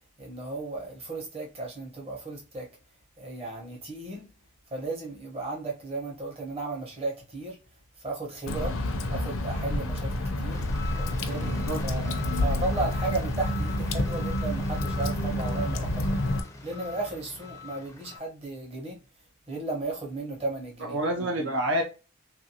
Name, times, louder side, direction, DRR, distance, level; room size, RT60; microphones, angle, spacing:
voice 1, 0.2-2.7 3.2-4.3 4.7-7.6 8.0-8.8 9.1-10.6 11.0-16.2 16.6-19.0 19.5-21.0, right 3 dB, 25° right, 0.9 m, -35 dB
Water / Drip, 8.5-16.4, left 1 dB, 65° left, 0.5 m, -29 dB
sound 1, 10.5-18.2, left 5 dB, 15° left, 0.4 m, -43 dB
voice 2, 11.4-11.8 20.8-21.8, right 1 dB, 55° right, 0.4 m, -28 dB
3.2 x 2.5 x 2.7 m
head